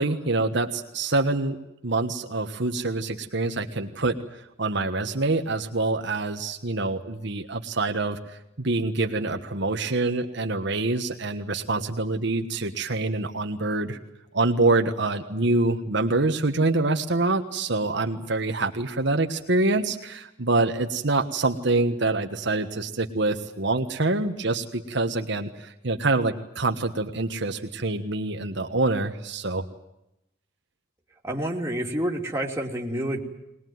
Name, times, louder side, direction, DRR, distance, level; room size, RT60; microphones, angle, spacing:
voice 1, 0.0-1.6 1.8-8.2 8.6-14.0 14.3-29.6, right 2 dB, 65° right, 4 dB, 1.5 m, -26 dB
voice 2, 31.2-33.2, right 1 dB, 15° right, -1 dB, 2.9 m, -28 dB
21.5 x 20.5 x 9.4 m, 0.86 s
head